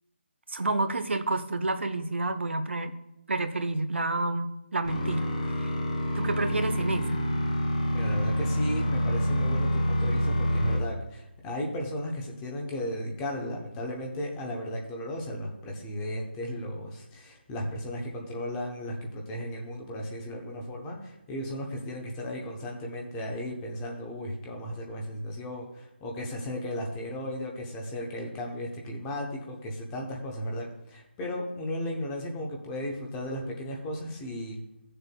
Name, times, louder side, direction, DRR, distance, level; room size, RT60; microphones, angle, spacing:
voice 1, 0.5-2.9 3.3-5.3 5.6-5.7 6.1-7.3, right 2 dB, 85° right, 8 dB, 1.0 m, -29 dB
sound 1, 4.9-10.8, equal, 35° left, 3.0 m, -27 dB
voice 2, 7.9-34.6, left 1 dB, 10° left, 0 dB, 0.7 m, -35 dB
16.0 x 6.7 x 2.2 m, 0.87 s
hypercardioid pair, 175°, 6 cm